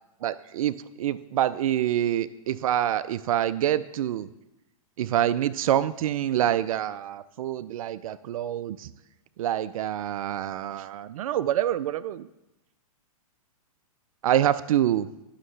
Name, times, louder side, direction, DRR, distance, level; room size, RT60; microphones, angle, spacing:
voice 1, 0.2-4.3 5.0-8.9 9.4-12.3 14.2-15.1, right 11 dB, 65° right, 15 dB, 0.4 m, -26 dB
11.0 x 6.4 x 3.2 m, 0.94 s
hypercardioid pair, 130°, 19 cm